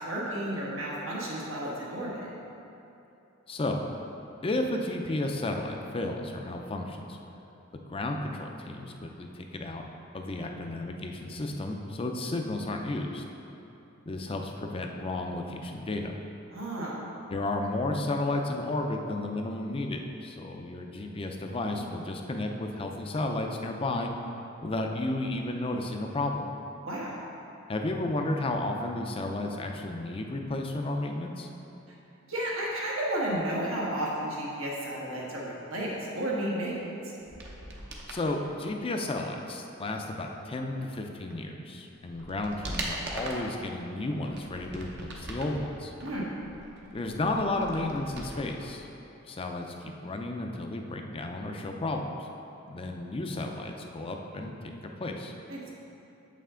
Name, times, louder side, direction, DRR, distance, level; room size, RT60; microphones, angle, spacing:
voice 1, 0.0-2.3 16.5-17.0 26.8-27.2 32.3-36.7 46.0-46.3 55.5-55.7, right 1 dB, 75° right, -5 dB, 1.4 m, -32 dB
voice 2, 3.5-3.8 4.4-7.2 7.9-9.8 10.1-13.2 14.1-16.2 17.3-24.1 24.6-26.5 27.7-31.5 38.1-45.9 46.9-48.9 49.3-52.3 52.7-54.7 55.0-55.3, left 2 dB, 25° left, 3 dB, 0.5 m, -32 dB
sound 1, 37.2-38.2 41.3-41.4 41.9-43.6 44.1-45.6 46.0-48.7 48.9-49.0, right 1 dB, 55° right, 0.9 m, -40 dB
7.5 x 5.6 x 3.7 m, 2.8 s
head